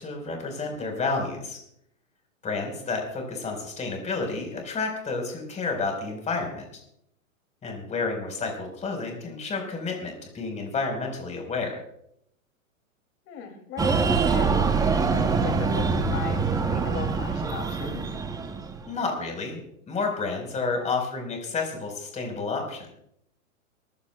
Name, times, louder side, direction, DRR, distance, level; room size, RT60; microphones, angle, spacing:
voice 1, 0.0-1.6 2.4-6.6 7.6-11.8 18.8-19.6 19.9-22.9, left 4 dB, 15° left, 2 dB, 4.3 m, -30 dB
voice 2, 13.3-18.1 20.7-20.9, left 6 dB, 30° left, 5 dB, 2.7 m, -38 dB
Breathing, 13.8-19.0, right 4 dB, 10° right, 0.7 m, -24 dB
26.0 x 15.0 x 2.3 m, 0.74 s
hypercardioid pair, 135°, 41 cm